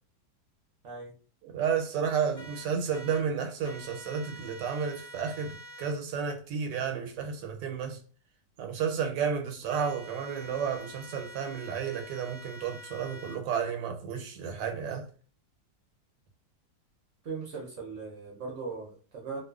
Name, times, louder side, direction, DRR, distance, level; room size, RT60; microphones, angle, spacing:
voice 1, 1.4-8.0 8.6-15.1, right 7 dB, 90° right, 1.2 m, -32 dB
sound 1, 2.3-3.2 3.6-5.9 9.7-13.4, right 1 dB, 20° right, 0.5 m, -47 dB
voice 2, 17.2-19.4, right 4 dB, 60° right, 0.8 m, -39 dB
2.6 x 2.3 x 2.3 m
omnidirectional pair, 1.8 m